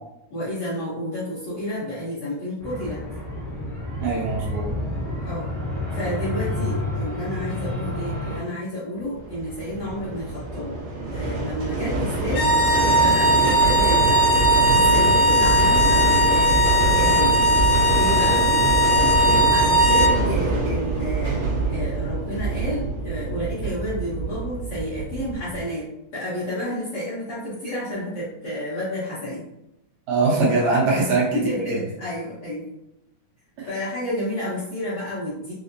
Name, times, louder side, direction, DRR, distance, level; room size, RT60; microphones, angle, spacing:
voice 1, 0.3-3.0 5.2-5.5 5.9-10.8 11.1-12.5 12.9-14.3 14.6-17.3 17.8-18.4 19.5-21.4 21.7-25.8 26.1-29.4 31.0-31.1 31.3-32.6 33.7-35.5, left 1 dB, 65° left, -11 dB, 1.5 m, -30 dB
sound 1, 2.6-8.4, left 1 dB, 55° right, 0.6 m, -29 dB
voice 2, 4.0-4.7 19.2-19.4 30.1-31.4 31.7-31.8 33.6-33.7, right 3 dB, 70° right, -4 dB, 2.0 m, -22 dB
sound 2, 9.1-25.6, right 3 dB, 90° right, 1.2 m, -25 dB
sound 3, 12.3-20.2, equal, 85° left, 2.1 m, -19 dB
5.0 x 2.0 x 2.6 m, 0.87 s
omnidirectional pair, 3.6 m